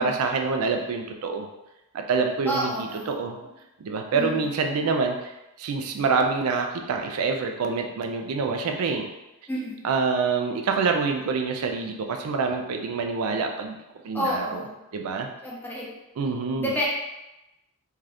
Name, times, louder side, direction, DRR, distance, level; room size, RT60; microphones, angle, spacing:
voice 1, 0.0-1.5 1.9-3.4 3.8-9.1 9.8-13.8 14.0-14.6 14.9-15.3 16.2-16.7, right 4 dB, 80° right, 4 dB, 0.4 m, -26 dB
voice 2, 2.5-3.5 4.1-4.5 9.5-9.8 14.1-14.8 15.4-15.9 16.5-16.8, equal, 10° left, -5 dB, 0.6 m, -30 dB
2.7 x 2.4 x 3.3 m, 0.95 s
head